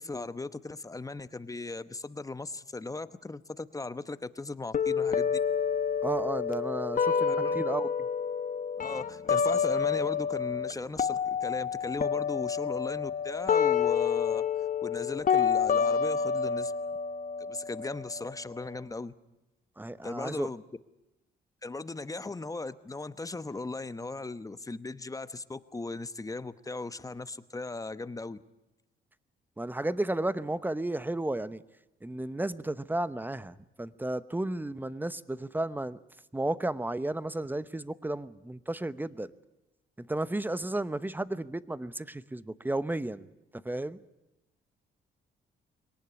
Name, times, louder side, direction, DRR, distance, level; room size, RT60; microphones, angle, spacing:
voice 1, 0.0-5.4 7.1-7.6 8.8-14.4 14.8-16.7 17.4-19.1 20.0-20.6 21.6-28.4, left 3 dB, 15° left, 14 dB, 1.0 m, -37 dB
sound 1, 4.7-10.7 11.0-18.8, left 7 dB, 40° left, 1.1 m, -29 dB
voice 2, 6.0-7.9 19.8-20.5 29.6-31.6 32.0-36.0 36.3-39.3 40.0-43.3 43.6-44.0, right 1 dB, 10° right, 16 dB, 0.9 m, -33 dB
23.0 x 18.5 x 9.7 m, 0.98 s
cardioid pair, 90°, 20 cm